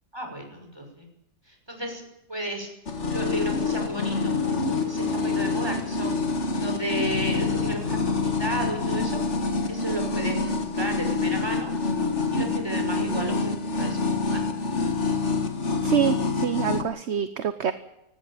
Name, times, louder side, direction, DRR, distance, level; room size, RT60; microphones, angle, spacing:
voice 1, 0.1-1.1 1.5-2.0 2.3-2.7 3.1-6.2 6.6-9.2 9.7-10.3 10.6-11.7 12.3-14.5, right 1 dB, 15° right, 3 dB, 5.9 m, -33 dB
sound 1, 2.9-16.8, left 4 dB, 45° left, 2.1 m, -26 dB
voice 2, 15.8-17.7, right 9 dB, 50° right, 11 dB, 1.1 m, -25 dB
18.0 x 17.0 x 8.8 m, 0.85 s
omnidirectional pair, 1.7 m